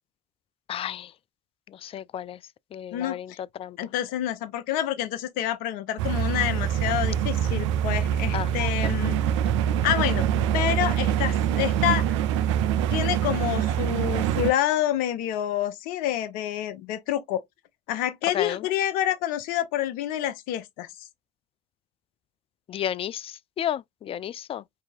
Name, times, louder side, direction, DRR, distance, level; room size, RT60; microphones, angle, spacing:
voice 1, 0.7-1.1 1.7-2.4 2.7-3.3 3.6-3.8 8.3-8.5 18.3-18.6 22.7-24.6, left 10 dB, 40° left, 0.4 m, -32 dB
voice 2, 2.9-3.4 3.8-9.2 9.8-10.3 10.5-12.1 12.9-17.4 17.9-21.1, left 11 dB, 70° left, 0.7 m, -28 dB
sound 1, 6.0-14.5, right 10 dB, 80° right, 0.4 m, -25 dB
5.0 x 2.8 x 2.5 m
hypercardioid pair, 60°, 15 cm